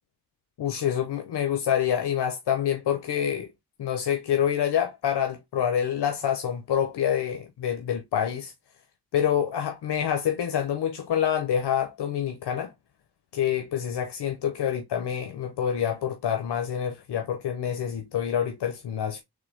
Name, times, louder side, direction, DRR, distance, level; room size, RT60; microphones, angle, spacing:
voice 1, 0.6-3.5 3.8-8.5 9.1-12.7 13.3-19.2, left 9 dB, 85° left, 0.7 m, -27 dB
3.7 x 3.3 x 3.3 m
cardioid pair, 45°, 39 cm